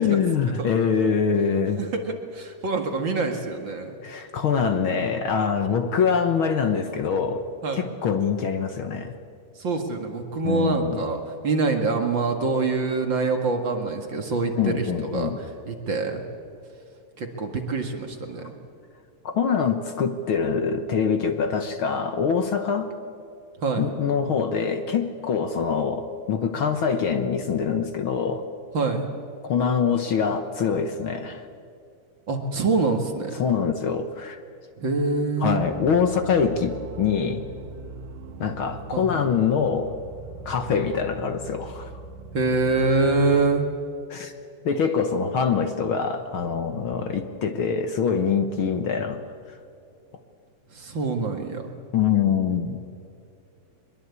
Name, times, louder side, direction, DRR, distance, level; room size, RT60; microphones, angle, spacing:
voice 1, 0.0-1.8 4.0-7.4 7.7-9.1 10.4-11.0 14.6-15.4 19.2-22.9 23.8-28.4 29.4-31.4 33.3-34.4 35.4-37.4 38.4-39.9 40.4-41.9 44.1-44.3 44.6-49.2 51.9-52.8, left 6 dB, 60° left, 8 dB, 1.6 m, -24 dB
voice 2, 1.8-4.0 7.6-7.9 9.6-15.3 15.7-16.2 17.2-18.5 23.6-23.9 28.7-29.1 32.3-33.3 34.8-35.6 38.9-39.1 42.3-43.7 50.7-51.7, right 3 dB, 45° right, 4 dB, 2.3 m, -25 dB
sound 1, 35.5-43.5, right 3 dB, 85° right, 2.6 m, -41 dB
23.0 x 22.0 x 8.3 m, 2.5 s
omnidirectional pair, 3.3 m